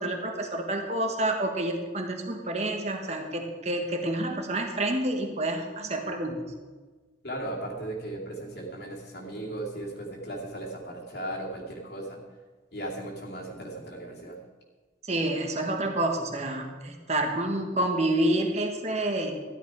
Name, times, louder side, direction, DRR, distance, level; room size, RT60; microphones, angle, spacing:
voice 1, 0.0-6.4 15.0-19.4, right 1 dB, 35° right, 3 dB, 1.6 m, -28 dB
voice 2, 7.2-12.2 12.7-14.4, right 1 dB, 55° left, -3 dB, 2.5 m, -36 dB
13.5 x 11.5 x 4.8 m, 1.4 s
head